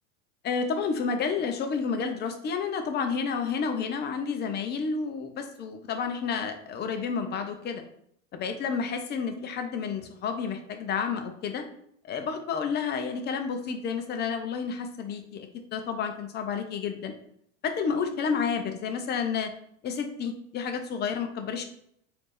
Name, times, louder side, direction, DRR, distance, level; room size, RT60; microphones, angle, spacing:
voice 1, 0.4-7.8 8.3-11.7 12.0-17.1 17.6-19.5 19.8-21.6, left 6 dB, 30° left, 6 dB, 0.5 m, -30 dB
4.1 x 2.6 x 3.3 m, 0.70 s
hypercardioid pair, 100°, 37 cm